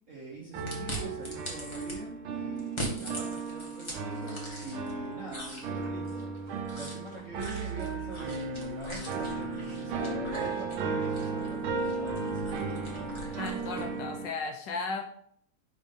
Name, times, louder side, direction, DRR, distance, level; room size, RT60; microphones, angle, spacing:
voice 1, 0.1-6.3 6.7-12.5, right 2 dB, 45° right, -4 dB, 1.2 m, -44 dB
sound 1, 0.5-14.3, right 4 dB, 80° right, 1.6 m, -35 dB
sound 2, 0.7-2.0 2.6-4.9 5.3-13.9, right 1 dB, 15° left, 1.1 m, -42 dB
voice 2, 13.4-15.0, left 4 dB, 70° left, 4 dB, 1.2 m, -35 dB
5.4 x 3.5 x 5.3 m, 0.65 s
omnidirectional pair, 2.2 m